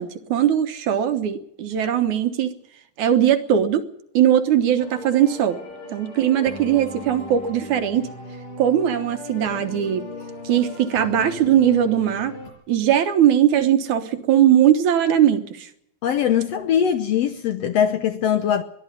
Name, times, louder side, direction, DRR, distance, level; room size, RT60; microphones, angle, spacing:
voice 1, 0.0-2.5 3.0-3.8 4.1-5.6 5.9-8.1 8.6-10.0 10.4-12.3 12.7-15.7, right 10 dB, 70° right, 2.6 m, -19 dB
sound 1, 4.8-12.5, left 2 dB, 85° left, 7.7 m, -38 dB
voice 2, 16.0-18.6, left 9 dB, 65° left, 1.7 m, -21 dB
21.5 x 12.5 x 9.8 m
omnidirectional pair, 3.7 m